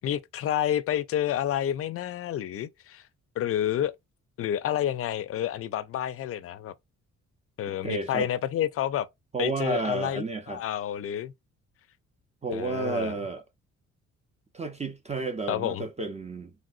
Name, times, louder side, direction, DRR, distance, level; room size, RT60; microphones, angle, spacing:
voice 1, 0.0-3.0 3.4-3.9 4.4-6.7 7.6-9.1 9.4-11.3 12.5-13.1 15.5-15.8, left 11 dB, 50° left, 0.4 m, -29 dB
voice 2, 7.7-8.3 9.3-10.6 12.4-13.4 14.5-16.5, right 3 dB, 25° right, 0.5 m, -31 dB
3.3 x 2.6 x 2.4 m
cardioid pair, 90°, 30 cm